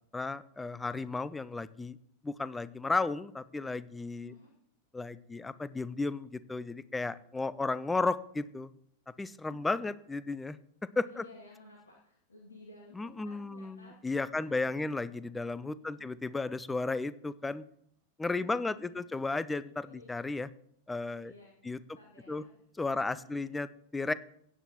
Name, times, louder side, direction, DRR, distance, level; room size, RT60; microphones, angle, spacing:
voice 1, 0.1-2.0 2.2-4.3 4.9-8.7 9.2-10.6 11.0-11.2 13.0-17.6 18.2-20.5 20.9-21.3 21.6-21.8 22.3-22.4 22.8-23.7 23.9-24.1, left 3 dB, 10° left, 17 dB, 0.5 m, -34 dB
voice 2, 4.2-4.5 9.5-10.0 11.0-15.0 15.8-16.1 18.4-19.1 19.8-20.1 21.2-22.5 22.9-23.5, left 2 dB, 75° left, -1 dB, 2.3 m, -55 dB
16.5 x 9.7 x 3.0 m, 0.68 s
figure-of-eight pair, 90°, 0 cm